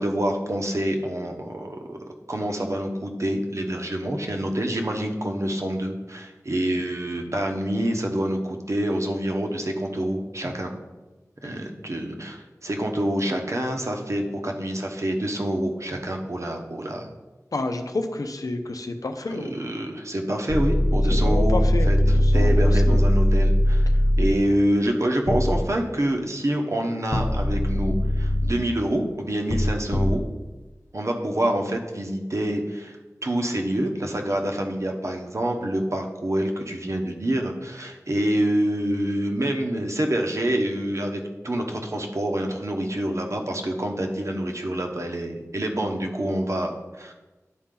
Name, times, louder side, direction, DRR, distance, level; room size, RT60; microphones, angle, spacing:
voice 1, 0.0-2.0 2.3-10.7 11.4-17.1 19.3-21.6 21.9-22.0 22.3-23.9 24.2-30.2 30.9-33.0 33.2-47.1, right 1 dB, 60° right, 2 dB, 1.0 m, -27 dB
voice 2, 17.5-19.5 21.1-23.0, left 2 dB, 85° left, 6 dB, 0.6 m, -30 dB
sound 1, 20.5-24.3 25.3-25.6 27.1-28.5 29.5-30.2, left 1 dB, 30° left, 0.5 m, -20 dB
10.5 x 4.3 x 3.8 m, 1.2 s
wide cardioid pair, 50°, 6 cm